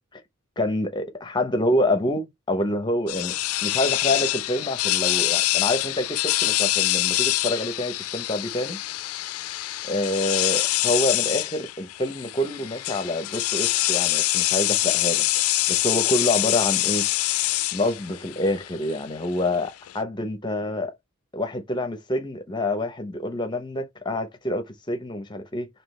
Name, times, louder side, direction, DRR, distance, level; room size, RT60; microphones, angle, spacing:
voice 1, 0.6-3.3 3.6-8.8 9.9-15.3 15.7-17.1 17.7-20.9 21.3-25.7, left 1 dB, 20° left, 0.7 m, -27 dB
sound 1, 3.1-20.0, left 16 dB, 80° left, 0.3 m, -25 dB
3.7 x 2.8 x 3.1 m
head